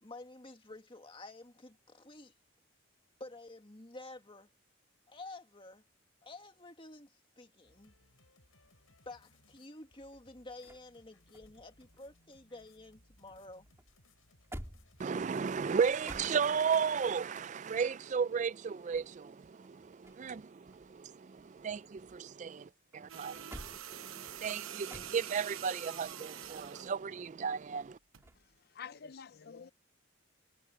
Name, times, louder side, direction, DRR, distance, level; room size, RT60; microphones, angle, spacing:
voice 1, 0.0-2.3 3.2-4.5 5.1-5.8 6.2-7.9 9.1-13.7, left 2 dB, 25° left, 2.0 m, -50 dB
sound 1, 7.6-16.5, left 2 dB, 80° left, 7.1 m, -66 dB
sound 2, 9.8-13.0 13.3-16.9 18.6-20.4 20.7-22.5 22.9-25.6 28.2-28.5, equal, 15° right, 3.1 m, -53 dB
voice 2, 15.0-28.0, right 6 dB, 35° right, 0.3 m, -34 dB
sound 3, 23.1-27.0 28.1-28.3, right 10 dB, 80° right, 1.0 m, -46 dB
voice 3, 28.7-29.7, left 6 dB, 50° left, 0.5 m, -47 dB
head